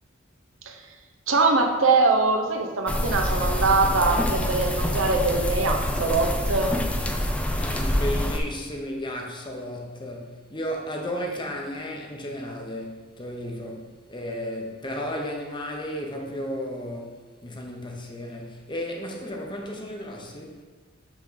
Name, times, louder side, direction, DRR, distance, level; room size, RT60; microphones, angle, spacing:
voice 1, 1.3-6.8, right 3 dB, 75° right, 3 dB, 0.8 m, -22 dB
sound 1, 2.9-8.4, left 1 dB, 5° left, 0.4 m, -26 dB
voice 2, 7.6-20.6, equal, 25° left, 1 dB, 0.8 m, -34 dB
6.0 x 3.7 x 5.6 m, 1.4 s
head